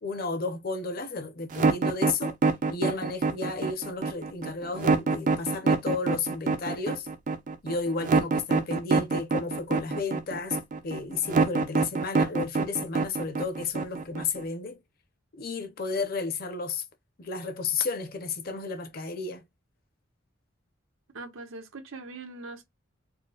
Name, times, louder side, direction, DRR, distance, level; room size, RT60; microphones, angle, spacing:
voice 1, 0.0-2.3 2.7-7.1 7.6-10.6 10.8-14.8 15.3-16.8 17.2-19.4, left 4 dB, 45° left, 0.6 m, -32 dB
sound 1, 1.5-14.4, right 4 dB, 40° right, 0.4 m, -25 dB
voice 2, 21.1-22.6, right 3 dB, 90° right, 0.9 m, -41 dB
4.2 x 2.1 x 2.3 m
head